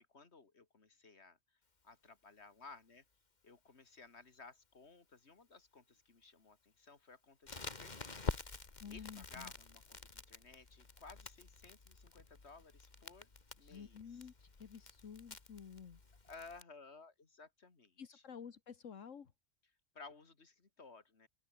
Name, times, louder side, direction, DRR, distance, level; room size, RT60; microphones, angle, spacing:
voice 1, 0.0-1.4 1.8-3.0 3.4-8.6 8.9-13.3 13.6-14.3 16.2-18.2 19.9-21.3, left 4 dB, 60° left, 2.7 m, -57 dB
Crackle, 7.5-16.6, left 3 dB, 35° left, 1.9 m, -48 dB
voice 2, 8.8-9.5 13.6-16.0 18.0-19.3, left 7 dB, 80° left, 1.7 m, -51 dB
open air
omnidirectional pair, 1.3 m